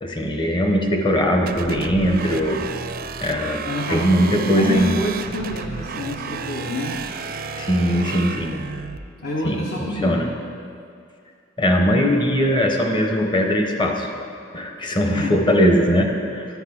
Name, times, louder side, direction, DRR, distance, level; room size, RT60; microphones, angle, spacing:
voice 1, 0.0-2.6 3.2-5.0 7.6-8.6 9.4-10.3 11.6-14.1 14.5-16.5, equal, 25° left, 2 dB, 0.9 m, -20 dB
sound 1, 1.5-9.0, right 5 dB, 45° right, 0.4 m, -32 dB
voice 2, 3.6-7.0 9.2-10.3 15.1-15.4, left 1 dB, 55° left, -2 dB, 0.9 m, -27 dB
11.5 x 5.8 x 5.9 m, 2.4 s
head